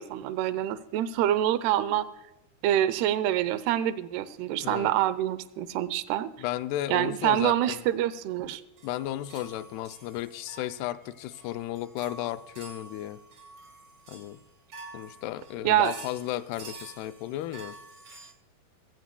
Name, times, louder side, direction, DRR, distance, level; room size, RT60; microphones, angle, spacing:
voice 1, 0.0-2.1 2.6-6.3 6.9-8.6 15.6-15.9, right 12 dB, 80° right, 14 dB, 2.7 m, -26 dB
voice 2, 6.4-7.8 8.8-13.2 14.1-14.4 14.9-17.8, left 14 dB, 80° left, 12 dB, 2.5 m, -34 dB
sound 1, 8.8-18.3, right 3 dB, 40° right, 2.9 m, -48 dB
21.5 x 16.0 x 2.2 m, 0.94 s
omnidirectional pair, 4.7 m